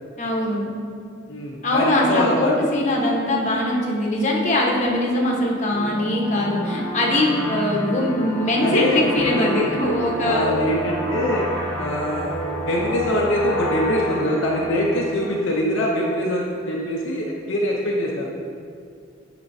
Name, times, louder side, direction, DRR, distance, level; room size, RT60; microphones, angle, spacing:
voice 1, 0.2-0.7 1.6-10.4, left 1 dB, 35° left, -2 dB, 1.1 m, -21 dB
voice 2, 1.3-2.5 8.6-9.6 10.2-11.4 11.8-12.4 12.7-18.3, left 1 dB, 65° left, -3 dB, 0.7 m, -23 dB
sound 1, 5.7-16.0, equal, 10° left, 1.5 m, -30 dB
10.0 x 5.1 x 2.7 m, 2.3 s
head